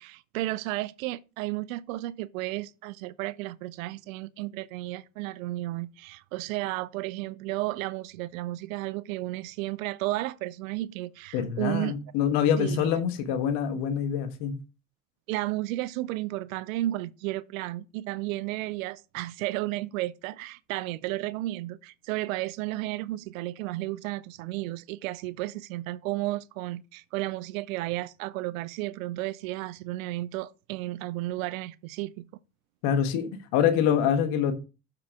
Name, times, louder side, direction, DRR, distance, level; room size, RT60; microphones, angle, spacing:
voice 1, 0.0-12.0 12.6-12.9 15.3-32.3, right 17 dB, 80° right, 0.5 m, -33 dB
voice 2, 11.3-14.5 32.8-34.5, left 8 dB, 75° left, 1.4 m, -25 dB
7.1 x 6.6 x 3.5 m
hypercardioid pair, 60°, 40 cm